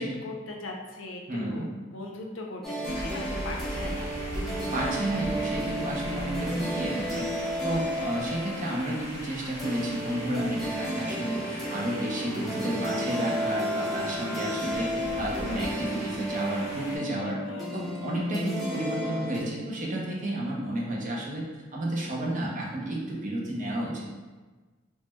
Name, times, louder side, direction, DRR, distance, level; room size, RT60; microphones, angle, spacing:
voice 1, 0.0-1.7 1.9-4.3 17.1-17.7, left 2 dB, 85° left, 1 dB, 0.5 m, -39 dB
voice 2, 1.3-1.7 4.7-7.3 7.6-14.9 15.2-17.4 17.7-21.4 21.7-24.1, right 1 dB, 40° right, -3 dB, 0.6 m, -31 dB
sound 1, 2.6-19.4, equal, ahead, 0.7 m, -33 dB
sound 2, 2.8-17.0, equal, 35° left, 1.2 m, -40 dB
3.1 x 3.0 x 2.2 m, 1.3 s
head